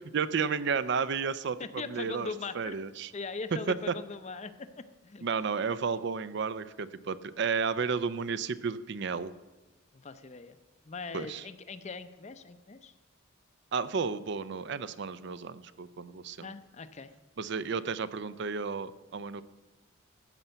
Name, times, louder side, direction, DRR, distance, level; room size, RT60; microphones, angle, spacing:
voice 1, 0.1-3.1 3.7-3.8 5.2-9.3 11.1-11.4 13.7-16.5 17.4-19.4, right 5 dB, 60° right, 15 dB, 0.5 m, -32 dB
voice 2, 1.6-2.7 3.1-5.3 9.9-10.6 10.9-12.9 16.4-17.1, left 4 dB, 35° left, 12 dB, 0.6 m, -41 dB
13.0 x 5.6 x 7.9 m, 1.2 s
head